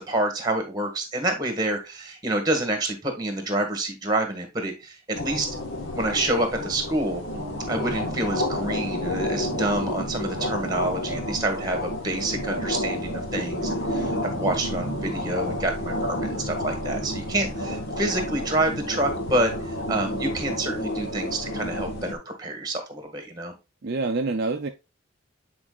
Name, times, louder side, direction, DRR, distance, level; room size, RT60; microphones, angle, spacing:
voice 1, 0.0-5.5 5.9-7.2 7.7-23.5, right 1 dB, 20° right, 1.7 m, -28 dB
sound 1, 5.1-22.1, left 1 dB, 65° left, 1.4 m, -30 dB
voice 2, 7.3-7.7 13.9-14.2 18.7-18.9 23.8-24.7, right 3 dB, 50° right, 0.5 m, -29 dB
8.7 x 4.6 x 2.4 m
head